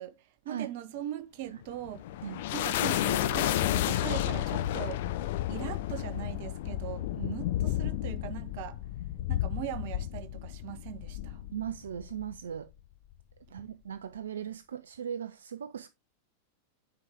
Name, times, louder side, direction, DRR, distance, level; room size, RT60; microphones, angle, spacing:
voice 1, 0.0-5.1 5.5-8.8 9.3-11.4 13.6-13.7, right 12 dB, 50° right, 0.8 m, -40 dB
sound 1, 1.6-12.4, left 13 dB, 55° left, 0.5 m, -32 dB
voice 2, 11.5-12.7 13.5-15.9, right 9 dB, 65° right, 0.4 m, -38 dB
9.6 x 4.8 x 3.5 m
figure-of-eight pair, 90°, 0 cm